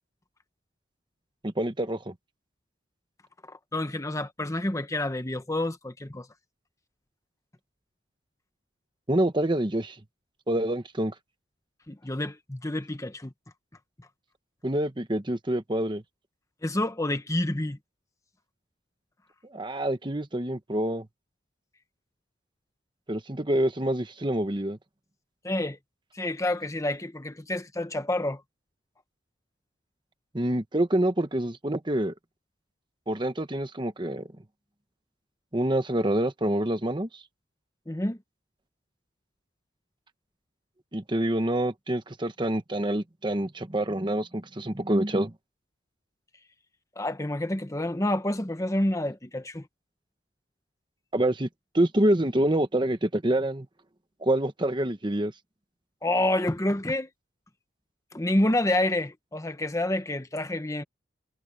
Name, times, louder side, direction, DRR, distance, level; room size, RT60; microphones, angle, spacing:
voice 1, 1.4-2.1 9.1-10.0 10.5-11.1 14.6-16.0 19.5-21.1 23.1-24.8 30.3-32.1 33.1-34.3 35.5-37.1 40.9-45.3 51.1-51.5 51.7-53.7 54.2-55.3, right 1 dB, 25° right, 1.1 m, -26 dB
voice 2, 3.5-6.3 11.9-13.3 16.6-17.8 25.4-25.8 26.1-28.4 37.9-38.2 47.0-49.7 56.0-57.1 58.1-60.8, left 1 dB, 15° left, 1.0 m, -28 dB
head